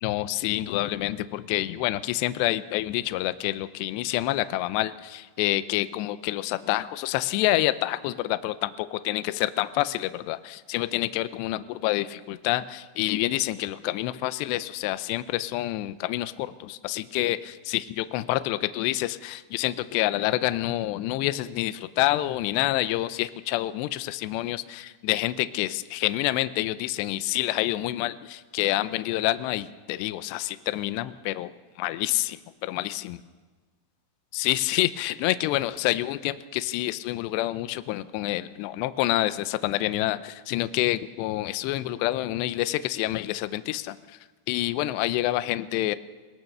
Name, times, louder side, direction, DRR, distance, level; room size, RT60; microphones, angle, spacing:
voice 1, 0.0-31.5 31.8-33.2 34.3-44.0 44.5-46.0, left 16 dB, 80° left, 13 dB, 2.5 m, -27 dB
25.0 x 18.5 x 6.7 m, 1.4 s
omnidirectional pair, 5.7 m